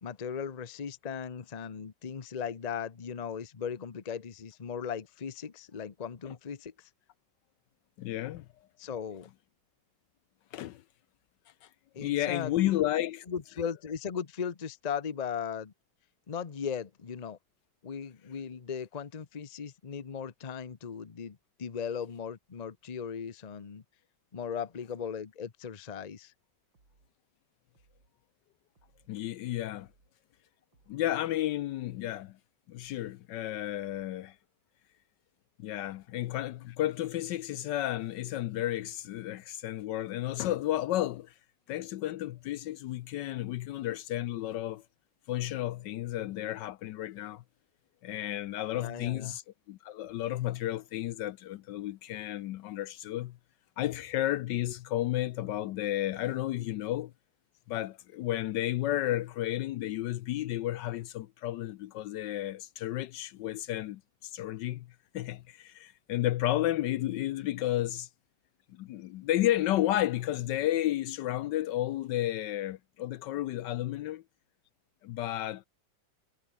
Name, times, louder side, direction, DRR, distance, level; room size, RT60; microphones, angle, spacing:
voice 1, 0.0-6.9 8.8-9.3 11.9-12.6 13.3-15.7 16.3-17.4 17.8-23.8 24.3-26.3 48.7-49.4, left 7 dB, 35° left, 0.7 m, -37 dB
voice 2, 8.0-8.4 10.5-10.8 12.0-13.2 29.1-29.9 30.9-32.3 32.7-34.3 35.6-41.3 41.7-44.8 45.3-47.4 48.0-49.4 49.7-53.4 53.8-57.1 57.7-64.9 65.1-68.1 68.7-74.2 75.0-75.7, left 14 dB, 70° left, 1.2 m, -32 dB
sound 1, 26.7-27.1 27.7-28.1 28.7-29.1 29.7-30.1 30.7-31.1 31.7-32.1 32.8-33.2 33.8-34.2, right 3 dB, 75° right, 5.1 m, -67 dB
omnidirectional pair, 2.1 m